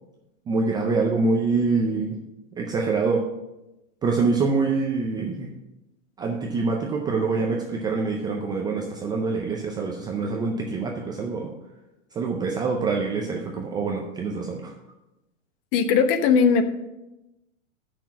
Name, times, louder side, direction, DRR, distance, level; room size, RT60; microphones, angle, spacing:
voice 1, 0.5-2.1 2.6-3.2 4.0-5.5 6.2-11.5 12.1-14.7, right 4 dB, 10° right, 0 dB, 0.4 m, -25 dB
voice 2, 15.7-16.6, left 6 dB, 40° left, 9 dB, 0.9 m, -18 dB
6.9 x 6.0 x 7.2 m, 0.95 s
hypercardioid pair, 135°, 40 cm